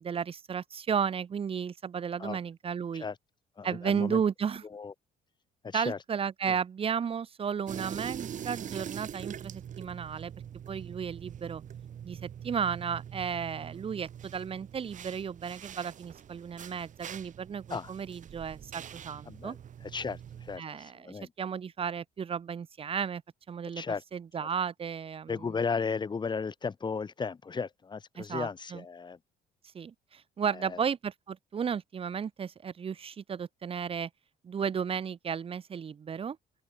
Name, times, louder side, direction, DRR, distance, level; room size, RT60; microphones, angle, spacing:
voice 1, 0.0-3.1 3.6-4.6 5.7-10.3 10.7-11.6 12.0-19.6 20.6-23.2 23.5-23.8 24.1-25.5 28.2-28.8 29.7-34.1 34.4-36.4, right 7 dB, 35° right, 1.0 m, -34 dB
voice 2, 3.6-4.2 4.7-4.9 5.6-6.0 6.5-6.6 17.7-17.9 19.3-19.6 19.8-21.3 23.8-24.0 24.4-24.5 25.3-29.2 30.5-30.8, left 5 dB, 30° left, 1.8 m, -35 dB
sound 1, 7.7-20.6, right 9 dB, 50° right, 4.2 m, -43 dB
open air
cardioid pair, 95°, 16 cm